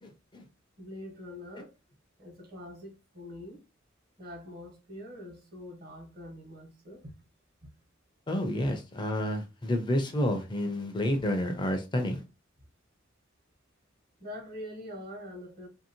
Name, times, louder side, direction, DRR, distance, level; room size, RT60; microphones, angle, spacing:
voice 1, 0.0-0.4 8.3-12.2, left 1 dB, 25° left, 0.5 m, -30 dB
voice 2, 0.8-1.7 2.2-3.6 4.2-7.1 14.2-15.7, left 1 dB, 50° right, 1.2 m, -44 dB
2.8 x 2.7 x 2.8 m
head